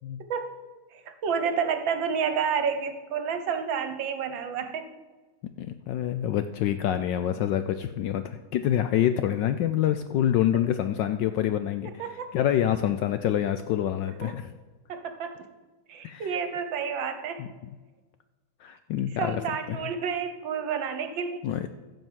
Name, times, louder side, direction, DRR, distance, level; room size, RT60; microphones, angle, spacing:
voice 1, 0.2-0.6 0.9-4.9 11.8-12.3 14.2-14.4 14.9-15.5 15.9-17.4 19.2-21.5, right 6 dB, 65° right, 8 dB, 1.6 m, -30 dB
voice 2, 5.6-11.9 12.3-14.5 16.0-16.4 17.4-17.5 18.6-19.4 19.7-19.8 21.4-21.7, left 11 dB, 75° left, 10 dB, 1.1 m, -26 dB
14.5 x 5.3 x 7.5 m, 1.3 s
omnidirectional pair, 2.4 m